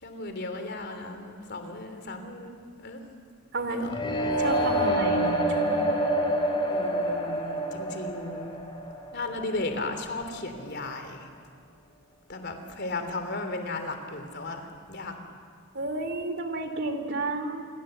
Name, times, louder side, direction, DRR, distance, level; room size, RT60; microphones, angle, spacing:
voice 1, 0.0-3.0 3.7-4.0 6.7-8.5 9.1-11.3 12.3-15.1, left 2 dB, 55° left, 6 dB, 3.2 m, -35 dB
voice 2, 3.5-3.9 4.4-5.8 15.7-17.7, right 2 dB, 55° right, 8 dB, 2.9 m, -31 dB
sound 1, 3.9-9.8, right 1 dB, 25° left, 4.9 m, -27 dB
28.5 x 23.5 x 8.0 m, 2.1 s
head